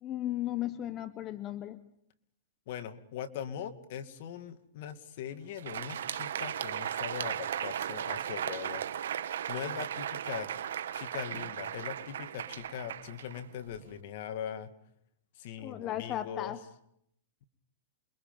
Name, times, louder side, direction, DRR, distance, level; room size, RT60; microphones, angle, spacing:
voice 1, 0.0-1.8 15.6-16.6, left 13 dB, 30° left, 12 dB, 1.0 m, -35 dB
voice 2, 2.7-8.8 9.5-10.5 10.9-14.7 15.4-16.6, left 9 dB, 55° left, 9 dB, 2.2 m, -41 dB
Crowd, 5.4-13.9, right 9 dB, 80° right, 1.4 m, -36 dB
28.5 x 23.0 x 5.4 m, 0.72 s
hypercardioid pair, 140°, 0 cm